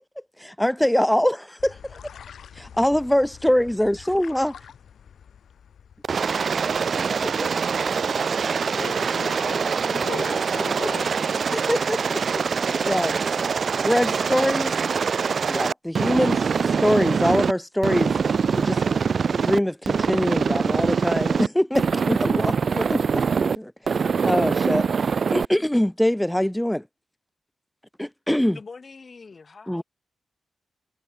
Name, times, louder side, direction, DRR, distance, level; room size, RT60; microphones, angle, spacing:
voice 1, 0.4-2.0 2.5-4.5 7.2-7.3 11.5-13.3 13.8-14.8 15.5-18.2 18.6-18.8 19.4-23.2 23.6-26.8 28.0-28.6 29.7-29.8, equal, 5° left, 1.1 m, -24 dB
sound 1, 1.6-6.9, left 8 dB, 85° left, 3.8 m, -46 dB
Aircraft, 6.0-17.5 17.8-19.6 19.9-21.5 21.8-23.6 23.9-25.5, right 5 dB, 55° right, 0.6 m, -24 dB
voice 2, 8.4-11.2, left 6 dB, 55° left, 4.2 m, -37 dB
voice 3, 28.5-29.8, left 4 dB, 40° left, 4.2 m, -43 dB
wide cardioid pair, 120°, 0 cm